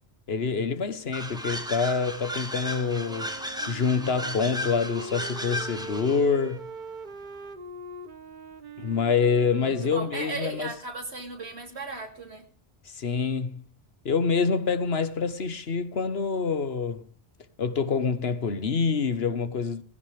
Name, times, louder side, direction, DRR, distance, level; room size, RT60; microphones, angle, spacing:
voice 1, 0.3-3.3 3.7-6.7 8.8-10.7 12.8-13.6 14.0-17.0 17.6-19.8, left 5 dB, 70° left, 1.4 m, -26 dB
sound 1, 1.1-6.3, equal, 5° right, 1.6 m, -35 dB
Wind instrument woodwind instrument, 2.5-10.9, right 3 dB, 50° right, 1.1 m, -43 dB
voice 2, 9.6-12.4, right 3 dB, 80° right, 3.2 m, -36 dB
18.5 x 15.5 x 3.4 m
omnidirectional pair, 1.1 m